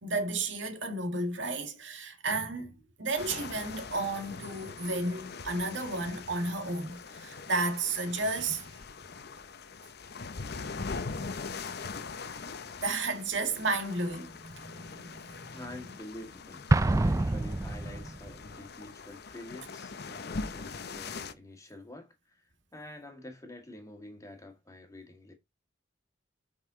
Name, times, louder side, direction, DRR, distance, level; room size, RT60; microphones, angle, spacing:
voice 1, 0.0-8.8 12.8-15.6, right 2 dB, 70° right, 1.9 m, -33 dB
sound 1, 3.2-21.3, left 4 dB, 55° left, 0.8 m, -42 dB
voice 2, 15.5-25.3, left 1 dB, 15° left, 1.9 m, -48 dB
Explosion, 16.7-18.3, right 2 dB, 15° right, 0.3 m, -26 dB
7.5 x 5.6 x 3.9 m
head